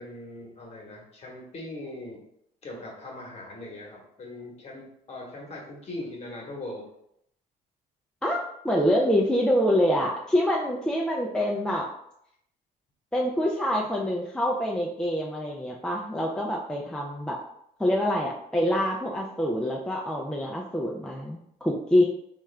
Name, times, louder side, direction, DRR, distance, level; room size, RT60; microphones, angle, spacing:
voice 1, 0.0-2.2 2.6-6.9, left 2 dB, 40° left, -1 dB, 1.1 m, -40 dB
voice 2, 8.2-11.9 13.1-17.4 17.8-22.0, equal, 5° left, -2 dB, 0.3 m, -26 dB
3.1 x 2.4 x 3.2 m, 0.74 s
cardioid pair, 110°, 17 cm